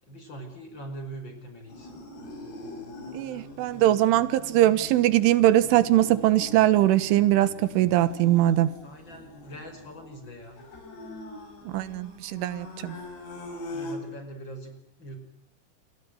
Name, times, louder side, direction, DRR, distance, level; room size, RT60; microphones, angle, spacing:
voice 1, 0.0-1.9 8.8-10.6 13.7-15.2, right 1 dB, 25° left, 7 dB, 5.4 m, -42 dB
sound 1, 1.7-14.0, left 2 dB, 60° left, 7.6 m, -42 dB
voice 2, 3.1-8.7 11.7-13.0, right 14 dB, 85° right, 15 dB, 3.8 m, -21 dB
28.5 x 24.0 x 7.9 m, 0.65 s
omnidirectional pair, 5.4 m